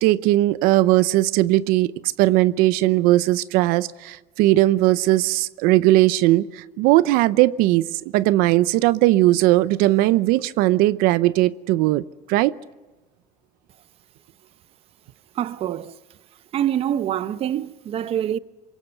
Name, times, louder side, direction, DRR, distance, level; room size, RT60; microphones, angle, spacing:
voice 1, 0.0-12.6, right 17 dB, 75° right, 0.7 m, -19 dB
voice 2, 15.4-15.9 16.5-18.4, right 10 dB, 40° right, 0.8 m, -25 dB
25.5 x 22.5 x 8.0 m
cardioid pair, 145°, 15 cm